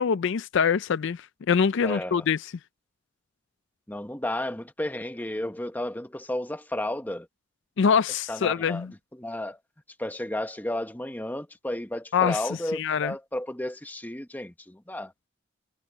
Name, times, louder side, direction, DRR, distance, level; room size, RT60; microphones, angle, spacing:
voice 1, 0.0-2.5 7.8-8.9 12.1-12.4 12.7-13.1, left 6 dB, 60° left, 0.4 m, -24 dB
voice 2, 1.8-2.2 3.9-7.3 8.3-8.9 9.1-9.6 10.0-15.1, left 1 dB, 10° left, 1.0 m, -33 dB
head